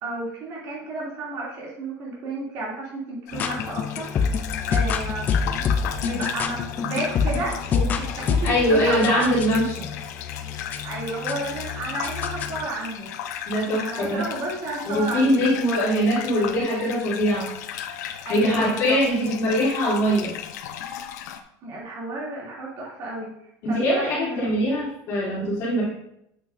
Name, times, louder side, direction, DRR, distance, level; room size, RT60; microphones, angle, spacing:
voice 1, 0.0-5.6 6.0-9.3 10.8-13.1 13.8-15.5 18.2-19.0 21.6-23.3 23.7-24.5, right 2 dB, 35° right, -4 dB, 2.6 m, -32 dB
sound 1, 3.3-21.4, left 9 dB, 85° left, 0.7 m, -35 dB
sound 2, 3.3-12.7, left 6 dB, 20° left, 0.4 m, -27 dB
voice 2, 8.4-9.9 13.5-14.2 14.8-17.6 18.3-20.3 23.6-25.9, equal, 35° left, -6 dB, 2.9 m, -22 dB
8.3 x 6.2 x 2.6 m, 0.77 s
supercardioid pair, 180°, 9 cm